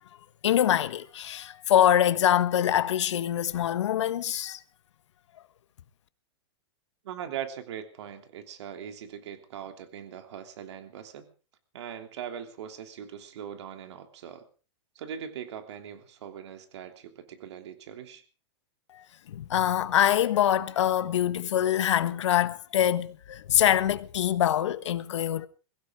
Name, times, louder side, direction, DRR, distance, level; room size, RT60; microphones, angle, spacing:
voice 1, 0.4-4.6 18.9-25.5, left 11 dB, 75° left, 1.4 m, -24 dB
voice 2, 7.0-11.3 11.7-14.5 14.9-18.2, right 9 dB, 70° right, 3.1 m, -40 dB
22.5 x 16.0 x 3.7 m
hypercardioid pair, 140°, 15 cm